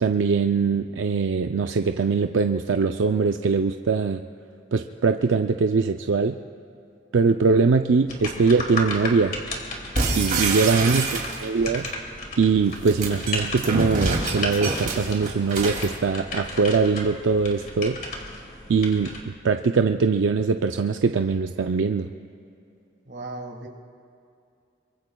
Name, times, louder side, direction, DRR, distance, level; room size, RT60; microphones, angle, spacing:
voice 1, 0.0-4.3 4.7-6.4 7.1-9.4 10.2-11.9 12.4-18.0 18.7-22.1, right 4 dB, 90° right, 6 dB, 0.5 m, -22 dB
sound 1, 8.1-19.2, left 2 dB, 45° left, 2.2 m, -35 dB
sound 2, 9.9-11.7 12.6-15.9, right 3 dB, 45° right, 2.6 m, -26 dB
voice 2, 10.3-11.1 23.1-23.7, right 2 dB, 60° right, 2 dB, 1.7 m, -38 dB
26.0 x 23.5 x 2.3 m, 2.6 s
head